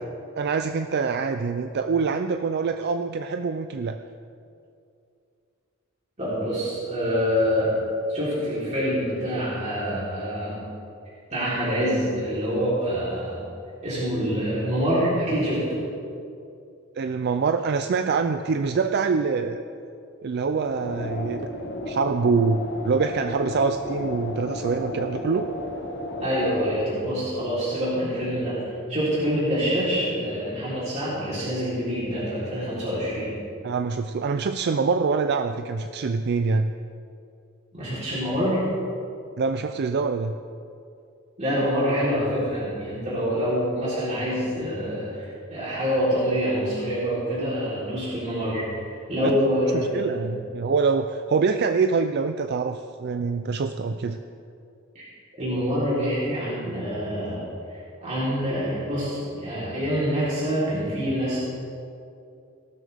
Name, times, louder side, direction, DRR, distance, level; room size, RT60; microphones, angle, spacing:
voice 1, 0.4-4.0 17.0-19.6 20.2-21.4 21.9-25.5 33.6-36.7 39.4-40.4 49.2-49.3 49.7-54.2, right 4 dB, 50° right, 8 dB, 0.4 m, -25 dB
voice 2, 6.2-7.7 8.1-10.6 11.3-13.4 13.8-15.7 26.2-28.6 28.9-33.3 37.7-38.6 41.4-48.7 49.1-50.2 55.0-55.1 55.4-57.4 58.0-61.4, equal, 35° right, -9 dB, 3.6 m, -26 dB
sound 1, 20.5-26.7, left 2 dB, 60° left, 1.4 m, -33 dB
17.5 x 12.5 x 3.5 m, 2.5 s
head